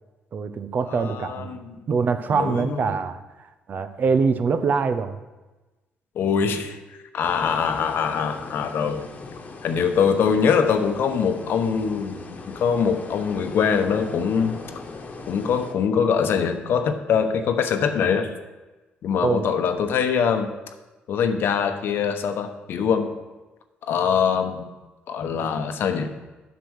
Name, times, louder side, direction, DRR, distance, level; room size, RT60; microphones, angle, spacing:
voice 1, 0.3-1.6 1.9-5.2 19.2-19.5, right 5 dB, 50° right, 10 dB, 0.7 m, -24 dB
voice 2, 0.9-1.7 2.3-2.9 6.1-6.8 7.1-9.1 9.6-14.6 15.3-18.3 19.0-20.5 21.1-23.2 23.8-24.7 25.1-26.1, left 6 dB, 65° left, 7 dB, 1.0 m, -23 dB
sound 1, 7.2-15.7, left 3 dB, 40° left, 1.3 m, -40 dB
8.2 x 6.0 x 6.4 m, 1.1 s
cardioid pair, 90°, 4 cm